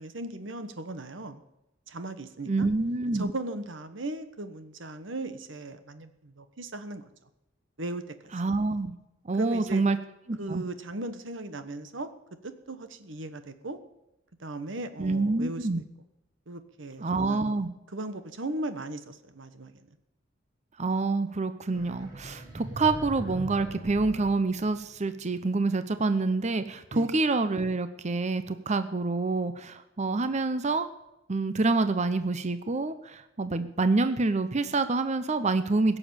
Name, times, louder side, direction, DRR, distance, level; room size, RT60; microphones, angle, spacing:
voice 1, 0.0-1.4 1.9-2.7 3.1-7.1 7.8-8.3 9.4-9.8 10.4-12.1 12.4-13.8 14.4-15.7 16.5-17.5 17.9-19.9 26.9-27.1, right 2 dB, 75° right, 10 dB, 1.3 m, -37 dB
voice 2, 2.5-3.3 8.3-9.0 9.2-10.0 10.3-10.6 15.0-15.8 17.0-17.7 20.8-30.9 31.3-36.0, right 3 dB, 35° right, 11 dB, 0.7 m, -27 dB
sound 1, 21.7-25.2, right 1 dB, 20° right, 7.0 m, -40 dB
16.5 x 7.2 x 8.8 m, 0.89 s
head